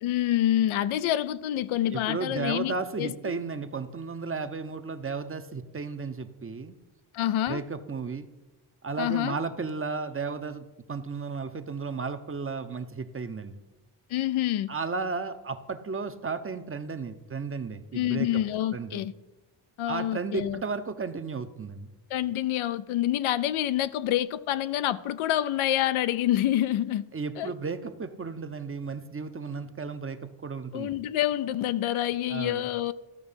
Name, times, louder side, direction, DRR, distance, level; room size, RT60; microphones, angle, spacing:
voice 1, 0.0-3.1 7.1-7.6 9.0-9.4 14.1-14.7 17.9-19.1 19.8-20.6 22.1-27.0 27.4-27.5 30.7-32.9, left 12 dB, 75° left, 0.6 m, -27 dB
voice 2, 1.9-6.8 7.5-8.3 8.8-13.6 14.7-18.4 18.7-19.0 19.9-21.9 27.1-30.9 32.3-32.7, right 4 dB, 25° right, 0.7 m, -34 dB
13.5 x 5.8 x 5.6 m
cardioid pair, 75°, 49 cm